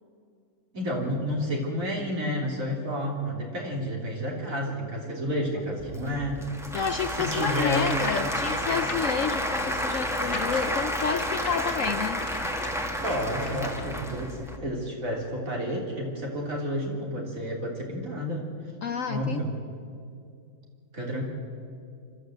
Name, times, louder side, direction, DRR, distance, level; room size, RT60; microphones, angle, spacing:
voice 1, 0.7-6.4 7.2-7.9 13.0-18.5 19.1-19.5 20.9-21.2, equal, 50° right, -1 dB, 3.7 m, -30 dB
Applause / Crowd, 5.8-14.6, equal, ahead, 1.6 m, -30 dB
voice 2, 6.7-12.3 18.8-19.4, left 6 dB, 60° left, 9 dB, 0.9 m, -30 dB
sound 1, 7.5-14.0, left 3 dB, 45° left, 2.0 m, -40 dB
25.0 x 13.5 x 7.9 m, 2.4 s
omnidirectional pair, 1.8 m